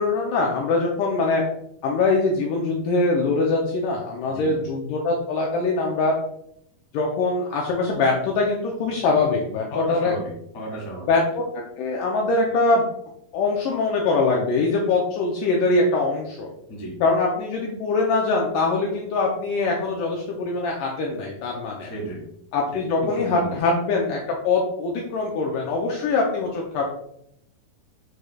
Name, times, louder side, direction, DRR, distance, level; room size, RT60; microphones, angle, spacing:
voice 1, 0.0-1.4 1.8-6.1 6.9-10.1 11.1-11.4 11.8-12.8 13.3-16.5 17.0-21.9 22.5-26.8, left 3 dB, 80° left, -1 dB, 1.9 m, -23 dB
voice 2, 4.3-4.6 9.7-11.1 16.7-17.0 21.9-22.2 22.7-22.8 23.1-23.6, right 1 dB, 45° left, -3 dB, 1.2 m, -34 dB
6.4 x 3.1 x 2.2 m, 0.72 s
omnidirectional pair, 4.2 m